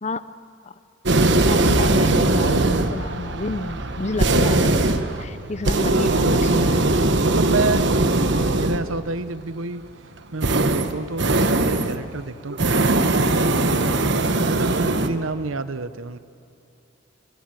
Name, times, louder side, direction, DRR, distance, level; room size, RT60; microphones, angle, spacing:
sound 1, 1.1-9.0 10.4-12.0 12.5-15.1, right 2 dB, 60° right, 1.3 m, -20 dB
voice 1, 1.4-6.9, left 2 dB, 35° left, 14 dB, 0.7 m, -30 dB
voice 2, 5.9-8.2 8.5-9.8 10.3-13.9 14.4-16.2, right 3 dB, 85° right, 14 dB, 0.9 m, -29 dB
28.0 x 21.5 x 9.0 m, 2.8 s
head